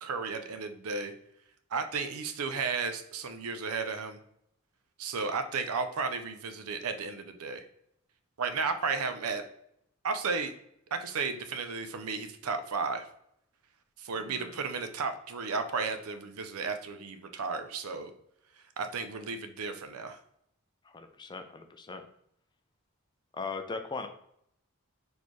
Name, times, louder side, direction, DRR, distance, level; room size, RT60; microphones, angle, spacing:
voice 1, 0.0-1.1 1.7-4.2 5.0-7.6 8.4-9.4 10.0-10.5 10.9-13.0 14.0-18.1 18.8-20.2, right 4 dB, 80° right, 8 dB, 0.6 m, -33 dB
voice 2, 14.2-14.6 20.9-22.0 23.3-24.1, left 4 dB, 20° left, 7 dB, 0.4 m, -39 dB
4.2 x 3.4 x 3.0 m, 0.73 s
head